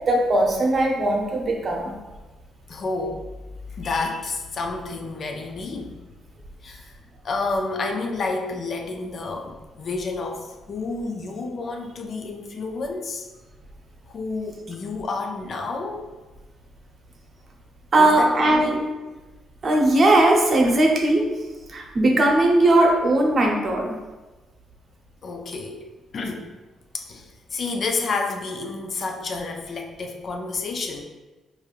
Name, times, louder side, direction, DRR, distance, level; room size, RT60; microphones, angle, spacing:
voice 1, 0.1-2.0 17.9-18.8 19.6-21.3 21.7-23.9, right 1 dB, 45° right, 0 dB, 0.7 m, -19 dB
voice 2, 2.7-3.3 3.7-6.0 6.6-7.0 7.2-13.3 14.1-16.1 18.0-18.8 25.2-25.8 26.1-26.5 26.9-31.1, left 3 dB, 50° left, 3 dB, 0.4 m, -30 dB
4.6 x 2.6 x 2.4 m, 1.2 s
cardioid pair, 90°, 0 cm